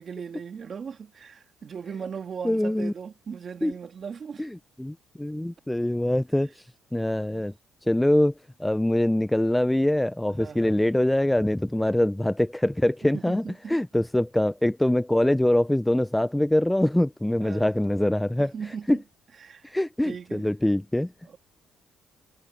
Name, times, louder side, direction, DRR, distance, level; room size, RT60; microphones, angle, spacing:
voice 1, 0.0-4.5 7.2-7.5 10.4-10.8 13.0-13.8 17.4-17.7 18.4-19.0 19.3-19.8 20.0-20.5 21.2-21.4, right 6 dB, 40° right, 2.0 m, -38 dB
voice 2, 2.4-2.9 3.6-3.7 4.4-4.5 4.8-6.6 6.9-7.5 7.9-8.3 8.6-13.4 13.7-18.5 18.9-19.0 19.6-21.1, left 1 dB, 5° left, 0.3 m, -23 dB
cardioid pair, 125°, 0 cm